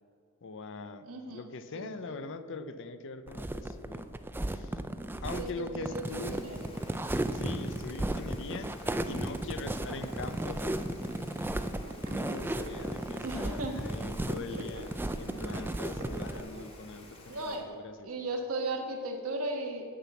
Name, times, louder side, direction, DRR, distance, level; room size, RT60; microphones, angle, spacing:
voice 1, 0.4-4.1 4.5-4.8 5.2-6.4 7.3-8.8 9.0-11.0 12.1-18.3, left 3 dB, 60° left, 11 dB, 0.6 m, -42 dB
voice 2, 1.0-1.5 1.7-2.2 5.4-6.8 13.2-13.8 14.3-14.6 17.3-17.6 18.0-19.8, right 2 dB, 80° right, 2 dB, 1.4 m, -36 dB
sound 1, 3.3-16.4, right 1 dB, 10° right, 0.3 m, -35 dB
Rain, 6.1-17.5, left 2 dB, 25° left, 1.4 m, -53 dB
sound 2, 9.1-17.6, right 1 dB, 55° right, 1.3 m, -48 dB
10.0 x 5.8 x 7.2 m, 2.4 s
head